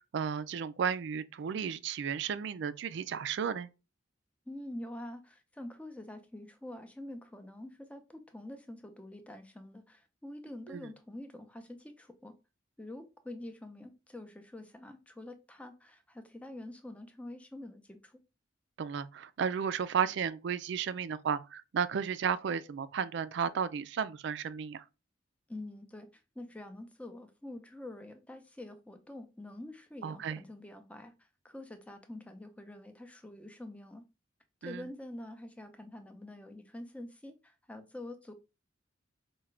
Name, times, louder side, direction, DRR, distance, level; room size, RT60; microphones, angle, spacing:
voice 1, 0.1-3.7 10.7-10.9 18.8-24.8 30.0-30.4 34.6-34.9, right 7 dB, 65° right, 0.3 m, -33 dB
voice 2, 4.5-12.3 12.8-18.2 25.5-34.0 34.6-38.3, left 1 dB, 5° left, 0.5 m, -46 dB
4.8 x 2.2 x 3.2 m
head